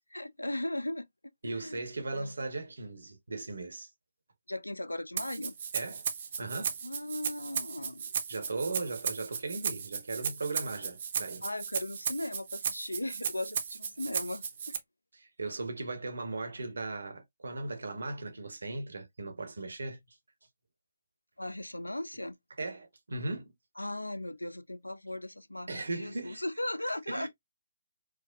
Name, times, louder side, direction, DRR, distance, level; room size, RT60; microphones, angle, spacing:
voice 1, 0.1-1.0 1.4-1.8 2.1-2.3 4.5-5.5 6.8-8.1 11.4-14.8 21.4-22.4 23.8-27.3, left 1 dB, 85° left, 0.3 m, -37 dB
voice 2, 1.4-3.9 5.7-6.0 6.4-6.8 8.3-11.4 15.2-20.0 22.6-23.5 25.7-26.4 27.1-27.3, right 3 dB, 70° right, 0.8 m, -37 dB
Rattle (instrument), 5.2-14.8, right 7 dB, 45° right, 0.6 m, -35 dB
4.6 x 2.1 x 2.2 m
figure-of-eight pair, 140°, 0 cm